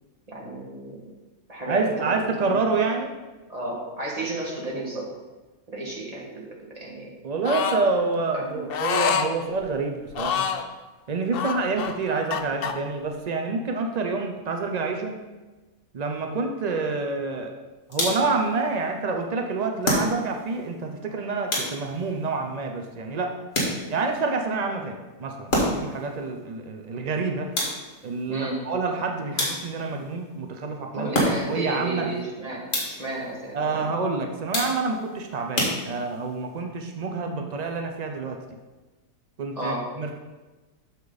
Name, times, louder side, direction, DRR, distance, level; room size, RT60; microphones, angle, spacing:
voice 1, 0.3-1.0 1.5-2.2 2.4-2.5 3.5-5.1 5.7-7.1 8.3-8.7 28.3-28.6 30.9-33.9 39.5-39.8, right 2 dB, 25° right, -3 dB, 1.8 m, -32 dB
voice 2, 1.7-3.1 7.2-10.4 11.1-15.1 15.9-17.5 17.9-23.4 23.9-27.5 28.0-31.1 31.5-32.1 33.5-38.4 39.4-40.2, right 4 dB, 75° right, 3 dB, 0.3 m, -27 dB
sound 1, 7.4-7.8 8.7-9.3 10.1-10.7 11.3-12.7, left 7 dB, 90° left, 0.5 m, -26 dB
sound 2, 17.9-18.4 19.8-20.5 21.5-22.1 23.5-24.1 25.5-26.0 27.6-28.1 29.4-29.9 31.1-31.7 32.7-33.2 34.5-35.0 35.6-36.3, left 1 dB, 50° left, 2.3 m, -27 dB
8.2 x 6.6 x 4.0 m, 1.2 s
omnidirectional pair, 1.7 m